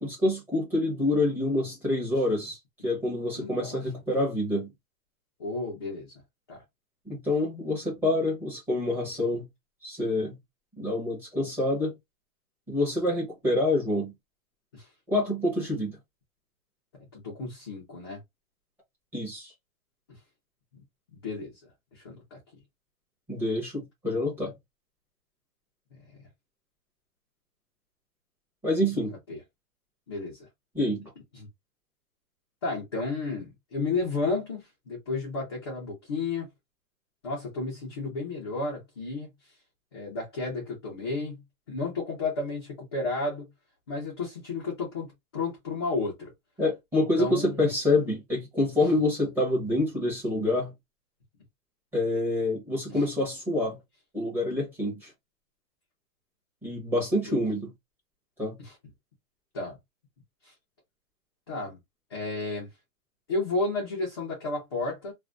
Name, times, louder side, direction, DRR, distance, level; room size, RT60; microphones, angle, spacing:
voice 1, 0.0-2.6 2.8-4.7 7.1-9.5 9.8-10.4 10.8-11.9 12.7-14.1 15.1-16.0 19.1-19.5 23.3-24.5 28.6-29.1 30.7-31.0 46.6-50.7 51.9-53.8 54.1-55.1 56.6-57.7 58.4-58.6, left 1 dB, 5° right, 0.7 m, -27 dB
voice 2, 3.4-3.8 5.4-6.1 6.5-6.6 14.7-14.9 17.1-18.2 21.2-21.5 21.9-22.4 29.3-29.4 30.1-30.5 31.3-31.5 32.6-36.5 37.2-39.3 39.9-41.4 41.7-43.5 43.9-45.1 45.3-46.3 47.2-47.6 52.9-53.0 57.3-57.4 58.6-58.7 59.5-59.8 60.4-60.5 61.5-61.8 62.1-62.7 63.3-65.1, left 3 dB, 20° left, 0.4 m, -32 dB
2.5 x 2.1 x 3.2 m
hypercardioid pair, 160°, 41 cm